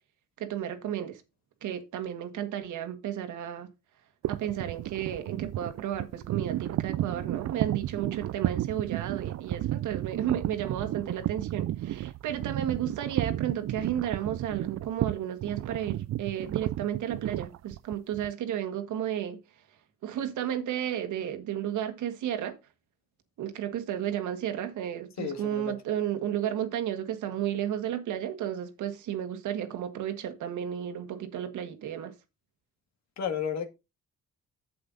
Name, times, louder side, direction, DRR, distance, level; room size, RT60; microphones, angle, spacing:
voice 1, 0.4-1.2 1.6-3.7 4.3-19.4 20.0-22.6 23.4-32.1, right 10 dB, 80° right, 1.7 m, -33 dB
sound 1, 4.2-18.3, right 14 dB, 60° right, 0.5 m, -32 dB
voice 2, 25.2-25.7 33.2-33.7, left 7 dB, 65° left, 1.9 m, -32 dB
7.9 x 7.8 x 3.9 m
cardioid pair, 90°, 30 cm